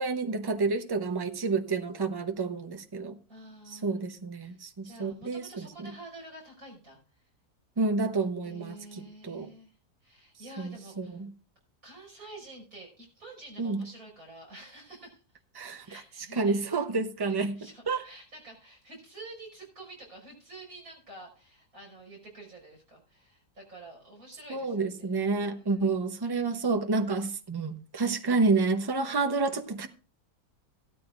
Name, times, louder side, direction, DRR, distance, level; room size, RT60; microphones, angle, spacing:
voice 1, 0.0-3.2 3.7-5.9 7.8-9.5 10.6-11.3 13.6-13.8 15.5-15.9 16.3-17.6 17.9-18.0 24.5-29.9, right 3 dB, 25° right, 0.6 m, -29 dB
voice 2, 3.3-4.0 4.4-7.2 8.4-11.2 11.8-15.2 15.8-16.6 17.3-25.1 25.4-26.1, right 2 dB, 60° right, 6.0 m, -49 dB
16.0 x 13.0 x 2.5 m
omnidirectional pair, 1.7 m